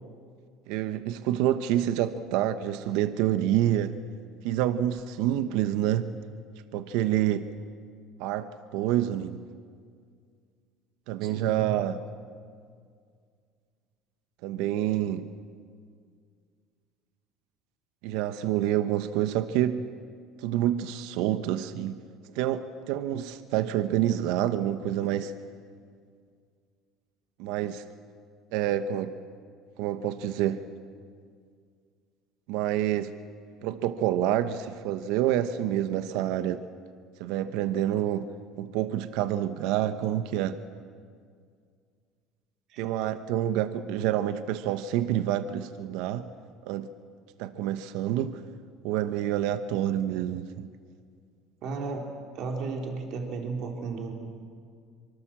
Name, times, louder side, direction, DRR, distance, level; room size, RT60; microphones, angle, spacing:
voice 1, 0.7-4.0 4.4-6.2 6.7-7.5 8.2-9.4 11.1-12.0 14.4-15.3 18.0-19.9 20.4-22.0 22.3-25.3 27.4-27.8 28.5-29.1 29.8-30.6 32.5-33.1 33.6-36.6 37.2-38.3 38.6-40.6 42.8-46.3 46.7-46.9 47.4-48.4 48.8-50.7, right 12 dB, 80° right, 11 dB, 1.0 m, -27 dB
voice 2, 11.2-11.8 42.7-42.8 51.6-52.0 52.3-54.1, right 4 dB, 60° right, 2 dB, 3.7 m, -34 dB
24.5 x 24.5 x 7.4 m, 2.1 s
cardioid pair, 120°, 0 cm